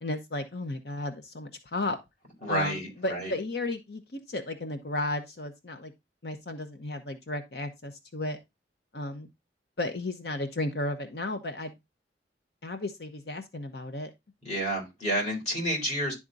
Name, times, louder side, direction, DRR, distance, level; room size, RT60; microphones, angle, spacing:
voice 1, 0.0-2.0 2.5-5.9 6.2-8.4 8.9-9.3 9.8-11.7 12.6-14.1, left 2 dB, 60° left, 8 dB, 0.8 m, -34 dB
voice 2, 2.4-3.3 14.4-16.1, equal, 40° left, -1 dB, 4.1 m, -30 dB
11.0 x 3.7 x 3.9 m, 0.21 s
head